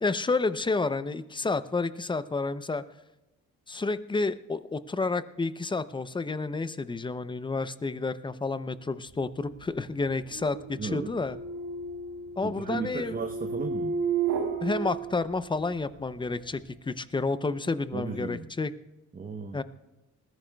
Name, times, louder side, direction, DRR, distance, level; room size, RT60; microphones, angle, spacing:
voice 1, 0.0-2.8 3.7-11.4 12.4-13.2 14.6-18.7 19.5-19.6, left 3 dB, 15° left, 14 dB, 0.6 m, -30 dB
sound 1, 9.4-15.9, right 5 dB, 80° right, 1.7 m, -33 dB
voice 2, 10.8-11.1 12.4-14.0 17.9-18.5 19.1-19.6, right 5 dB, 30° right, 4 dB, 0.9 m, -35 dB
20.0 x 14.5 x 2.3 m, 0.98 s
cardioid pair, 90°, 30 cm